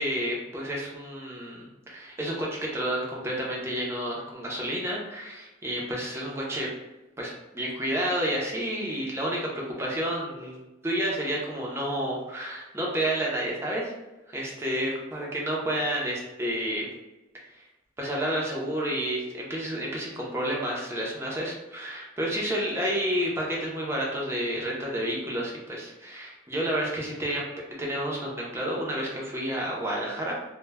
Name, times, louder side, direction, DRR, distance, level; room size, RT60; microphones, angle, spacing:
voice 1, 0.0-6.7 7.2-10.6 10.8-13.9 14.3-16.8 18.0-27.4 27.8-30.4, equal, 15° right, -3 dB, 0.5 m, -30 dB
2.1 x 2.1 x 3.3 m, 1.1 s
head